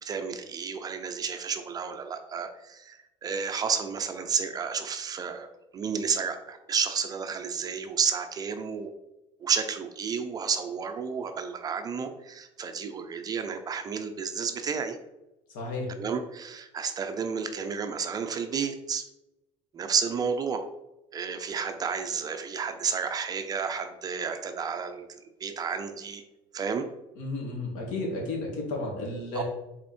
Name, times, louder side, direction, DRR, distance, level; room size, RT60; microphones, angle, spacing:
voice 1, 0.0-5.5 5.7-8.9 9.4-15.0 16.0-19.1 19.7-20.6 21.1-26.2 26.5-26.9 29.3-29.4, right 6 dB, 30° right, 7 dB, 0.6 m, -31 dB
voice 2, 15.5-15.9 27.2-29.4, left 2 dB, 75° left, 0 dB, 2.4 m, -33 dB
5.9 x 4.2 x 4.5 m, 0.95 s
cardioid pair, 140°, 14 cm